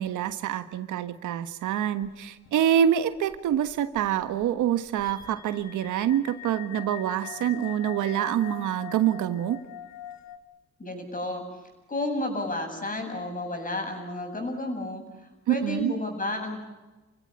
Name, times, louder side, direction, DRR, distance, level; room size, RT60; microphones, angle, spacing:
voice 1, 0.0-9.6 15.5-15.9, right 10 dB, 80° right, 11 dB, 1.4 m, -26 dB
sound 1, 2.0-2.5 2.7-2.8 3.1-10.4, left 12 dB, 65° left, 2.5 m, -43 dB
voice 2, 10.8-11.4 11.9-15.0 15.5-16.6, left 2 dB, 25° left, 3 dB, 7.9 m, -31 dB
28.5 x 16.0 x 9.6 m, 1.1 s
cardioid pair, 90°, 30 cm